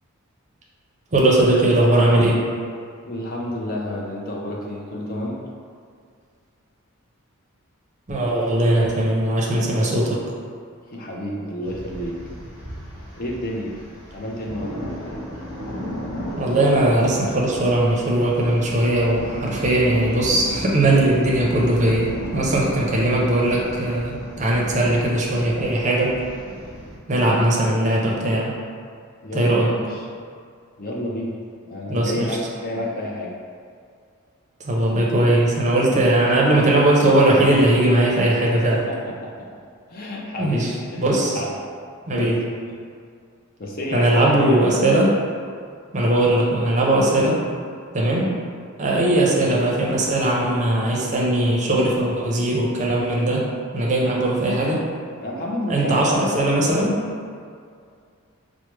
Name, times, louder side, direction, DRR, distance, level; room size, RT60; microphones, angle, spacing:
voice 1, 1.1-2.4 8.1-10.2 16.4-26.1 27.1-28.5 29.3-29.7 31.9-32.3 34.7-38.8 40.4-41.4 42.1-42.4 43.9-45.1 45.9-47.4 47.9-48.3 48.8-53.5 53.7-54.8 55.7-56.9, right 1 dB, 35° right, -3 dB, 0.6 m, -19 dB
voice 2, 3.1-5.4 10.9-12.2 13.2-13.7 14.1-14.8 22.2-22.4 23.2-23.3 29.2-30.1 30.8-31.4 31.7-33.3 35.9-36.0 38.7-39.5 39.9-41.5 42.1-42.4 43.6-44.7 55.2-56.3, left 1 dB, 40° left, -2 dB, 0.5 m, -30 dB
sound 1, 11.6-27.0, equal, 20° left, 1.2 m, -35 dB
4.6 x 2.1 x 3.1 m, 2.2 s
head